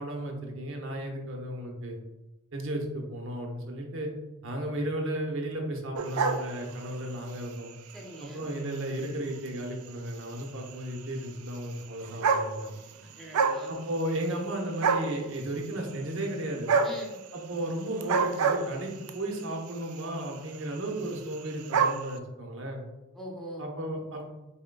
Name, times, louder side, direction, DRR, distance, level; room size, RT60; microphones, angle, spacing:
voice 1, 0.0-2.0 2.5-4.1 4.4-7.7 8.2-12.7 13.7-16.7 17.3-22.8 23.6-24.3, right 1 dB, 65° right, 1 dB, 0.8 m, -34 dB
sound 1, 5.9-7.1 7.7-8.0 8.8-8.9 9.0-9.1 9.5-9.6 10.7-10.8 11.8-11.9 12.0-12.9 13.2-13.7 14.0-14.5 14.8-15.2 16.7-17.0 17.9-19.2 20.0-20.3 20.5-20.6 20.9-21.0 21.1-22.0, right 5 dB, 90° right, 0.4 m, -26 dB
voice 2, 7.9-8.5 13.0-13.8 16.8-17.2 23.1-23.7, equal, ahead, -3 dB, 0.7 m, -43 dB
4.3 x 3.7 x 2.2 m, 1.1 s
head